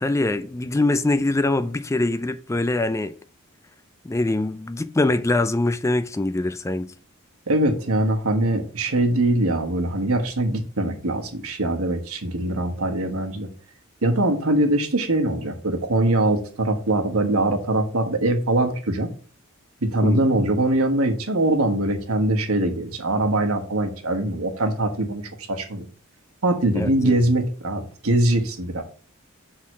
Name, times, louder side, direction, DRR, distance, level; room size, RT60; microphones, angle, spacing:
voice 1, 0.0-3.1 4.0-6.9 20.0-20.3 26.7-27.2, left 2 dB, 15° left, 0.4 m, -23 dB
voice 2, 7.5-13.5 14.0-19.1 19.8-25.2 25.5-25.8 26.4-28.8, right 1 dB, 90° right, 1.3 m, -22 dB
6.3 x 3.9 x 6.0 m
head